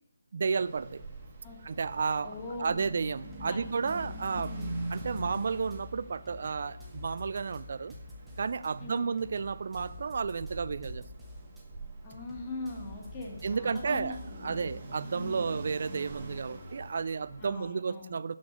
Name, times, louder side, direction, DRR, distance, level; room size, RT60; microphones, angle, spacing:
voice 1, 0.3-1.0 1.6-2.3 2.6-4.5 4.9-7.9 8.4-11.0 13.4-18.3, right 5 dB, 50° right, 17 dB, 0.3 m, -32 dB
sound 1, 0.6-17.6, right 1 dB, 25° right, 1.3 m, -44 dB
voice 2, 2.2-2.9 3.4-4.8 5.1-5.4 8.8-9.1 12.0-14.7 15.1-15.5 17.4-18.2, left 2 dB, 20° left, -1 dB, 1.6 m, -42 dB
sound 2, 2.8-2.9 3.3-5.8 6.2-8.7 9.2-11.6 12.1-14.5, left 2 dB, 5° right, 1.0 m, -49 dB
6.2 x 6.1 x 7.3 m, 0.79 s
hypercardioid pair, 170°, 0 cm